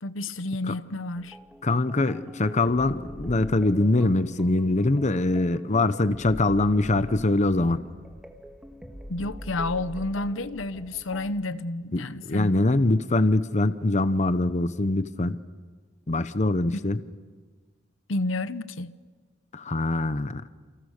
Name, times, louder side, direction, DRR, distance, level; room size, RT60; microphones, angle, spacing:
voice 1, 0.0-1.4 9.1-12.9 18.1-18.9, left 2 dB, 85° left, 1.0 m, -30 dB
sound 1, 1.1-11.3, equal, 5° right, 1.7 m, -43 dB
voice 2, 1.6-7.8 11.9-15.4 16.1-17.0 19.5-20.4, left 2 dB, 40° left, 0.9 m, -23 dB
29.5 x 29.0 x 6.6 m
head